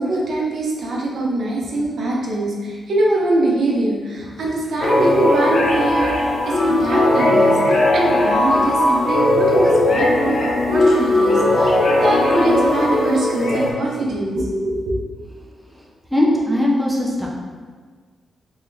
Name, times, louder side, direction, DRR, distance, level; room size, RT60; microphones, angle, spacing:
voice 1, 0.0-15.0, right 1 dB, 60° right, -2 dB, 0.7 m, -23 dB
sound 1, 4.8-13.7, left 1 dB, 50° left, 0.6 m, -17 dB
voice 2, 16.1-17.3, left 1 dB, 5° right, -4 dB, 0.5 m, -19 dB
3.8 x 3.1 x 2.6 m, 1.5 s
wide cardioid pair, 150°, 0 cm